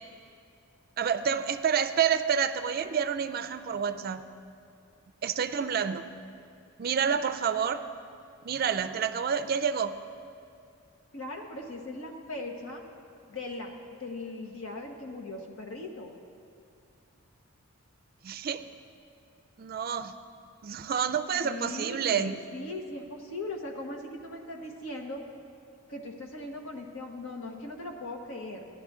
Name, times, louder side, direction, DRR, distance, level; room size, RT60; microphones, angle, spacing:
voice 1, 1.0-4.3 5.2-6.0 6.8-7.8 8.4-9.9 18.2-18.6 19.6-20.1 20.6-22.4, right 7 dB, 45° right, 11 dB, 0.4 m, -28 dB
voice 2, 11.1-12.8 13.3-13.7 14.0-16.1 21.4-25.2 25.9-28.7, left 2 dB, 75° left, 2 dB, 1.2 m, -39 dB
15.5 x 10.5 x 3.6 m, 2.4 s
head